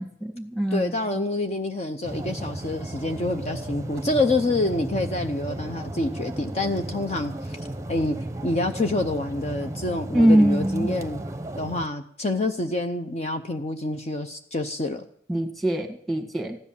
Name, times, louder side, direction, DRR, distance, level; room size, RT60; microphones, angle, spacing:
voice 1, 0.0-0.9 10.1-11.0 15.3-16.6, right 1 dB, ahead, 4 dB, 1.8 m, -22 dB
voice 2, 0.7-7.6 7.9-8.2 8.4-11.2 11.6-15.0, left 2 dB, 40° left, 6 dB, 0.7 m, -27 dB
sound 1, 2.0-11.9, right 1 dB, 15° right, 0.8 m, -34 dB
15.0 x 11.0 x 7.2 m, 0.63 s
head